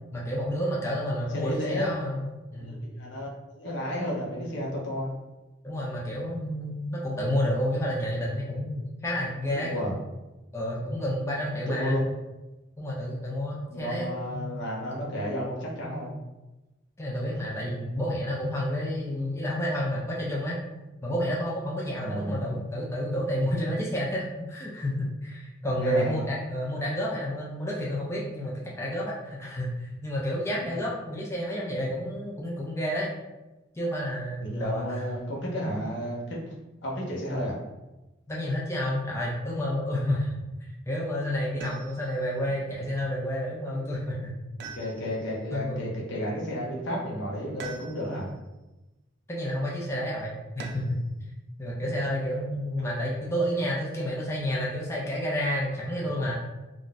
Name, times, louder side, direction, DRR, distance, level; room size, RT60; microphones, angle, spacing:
voice 1, 0.1-2.8 5.6-10.0 10.5-12.0 12.8-14.5 17.0-20.6 21.0-33.1 33.7-35.0 38.3-40.3 40.9-44.3 45.5-45.9 49.3-51.0 51.6-56.3, equal, 15° left, -5 dB, 0.5 m, -30 dB
voice 2, 1.3-1.9 2.6-5.1 9.5-9.9 11.5-12.1 13.7-16.1 17.6-17.8 22.0-22.5 25.7-26.2 30.6-30.8 34.4-36.2 36.8-37.6 44.7-48.3, equal, 70° left, -4 dB, 0.9 m, -32 dB
sound 1, 41.6-42.2 44.6-45.4 47.6-48.3 50.6-51.1 52.8-53.4, right 4 dB, 60° right, 0.4 m, -43 dB
2.4 x 2.2 x 3.9 m, 1.0 s
head